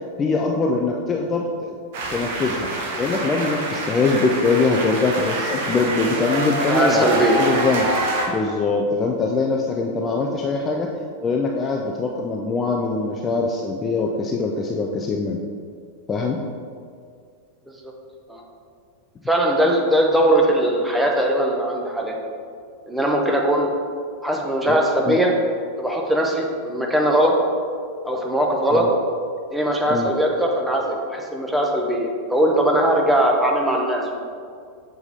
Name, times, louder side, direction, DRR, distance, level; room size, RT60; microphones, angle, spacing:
voice 1, 0.2-1.8 2.1-2.7 3.0-7.9 8.3-10.9 11.2-15.4 16.1-16.4 24.7-24.8 25.0-25.2 28.7-28.9 29.9-30.1, left 3 dB, 20° left, 0 dB, 0.4 m, -22 dB
sound 1, 1.9-8.3, right 2 dB, 50° right, 0.9 m, -26 dB
voice 2, 6.7-7.4 17.8-17.9 18.3-18.4 19.3-22.2 22.9-23.7 24.2-25.3 25.8-27.3 28.0-28.9 29.5-34.2, right 1 dB, 5° right, -1 dB, 0.8 m, -20 dB
6.8 x 3.4 x 4.0 m, 2.2 s
figure-of-eight pair, 90°, 0 cm